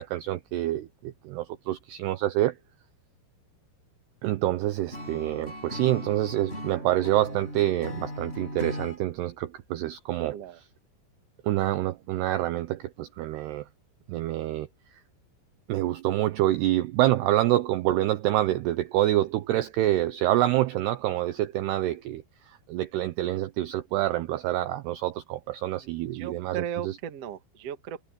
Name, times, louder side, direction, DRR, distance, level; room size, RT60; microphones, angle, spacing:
voice 1, 0.0-2.6 4.2-10.7 11.4-13.7 14.1-14.7 15.7-27.0, right 14 dB, 90° right, 2.3 m, -27 dB
Acoustic guitar / Strum, 4.9-9.0, left 1 dB, 10° left, 6.4 m, -38 dB
voice 2, 25.8-28.0, right 9 dB, 70° right, 1.4 m, -36 dB
omnidirectional pair, 5.8 m